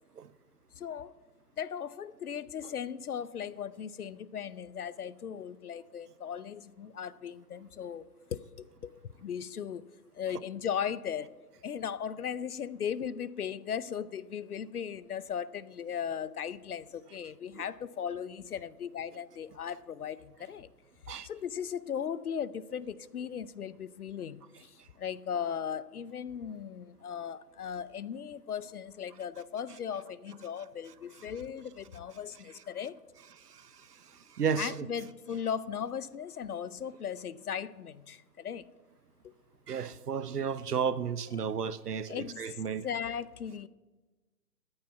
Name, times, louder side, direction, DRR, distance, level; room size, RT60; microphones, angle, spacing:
voice 1, 0.8-1.1 1.6-8.0 8.3-9.9 10.1-11.3 11.6-20.7 21.2-33.0 34.6-38.7 39.2-39.3 42.1-43.7, left 8 dB, 65° left, 0.7 m, -37 dB
voice 2, 33.4-34.9 39.7-42.9, right 6 dB, 70° right, 0.9 m, -33 dB
13.5 x 8.8 x 5.7 m
hypercardioid pair, 155°, 49 cm